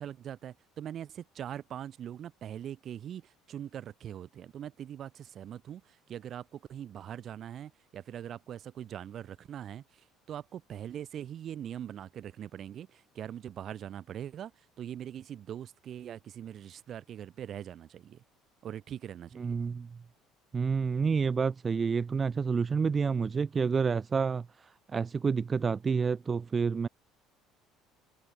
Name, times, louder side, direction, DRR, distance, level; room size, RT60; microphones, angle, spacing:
voice 1, 0.0-14.5 14.8-18.2 18.6-19.6, right 10 dB, 45° right, 2.4 m, -42 dB
voice 2, 19.4-19.9 20.5-26.9, right 5 dB, 25° right, 1.1 m, -29 dB
cardioid pair, 130°, 0 cm